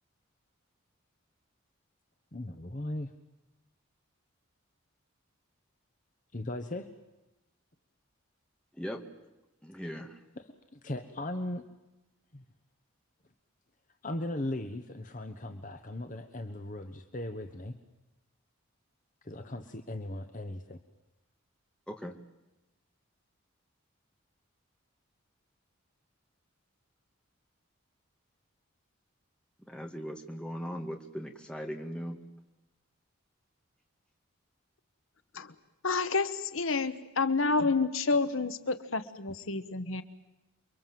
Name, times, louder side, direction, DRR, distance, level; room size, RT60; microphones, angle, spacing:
voice 1, 2.3-3.1 6.3-6.9 10.4-11.7 12.3-12.4 14.0-17.8 19.2-20.8, left 1 dB, 40° left, 7 dB, 1.2 m, -38 dB
voice 2, 8.7-9.0 9.6-10.2 21.9-22.1 29.6-32.2, equal, 5° left, 3 dB, 2.0 m, -39 dB
voice 3, 35.8-40.0, left 4 dB, 75° left, 12 dB, 1.2 m, -29 dB
29.0 x 23.5 x 7.7 m, 1.0 s
head